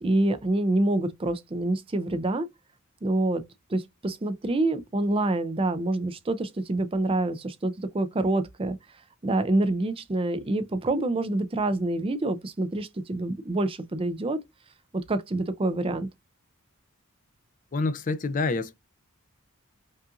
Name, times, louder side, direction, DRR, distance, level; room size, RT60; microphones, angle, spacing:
voice 1, 0.0-2.5 3.0-3.4 3.7-8.8 9.2-14.4 14.9-16.1, right 2 dB, 25° right, 0.4 m, -26 dB
voice 2, 17.7-18.7, left 3 dB, 35° left, 0.4 m, -27 dB
5.3 x 2.5 x 2.5 m
head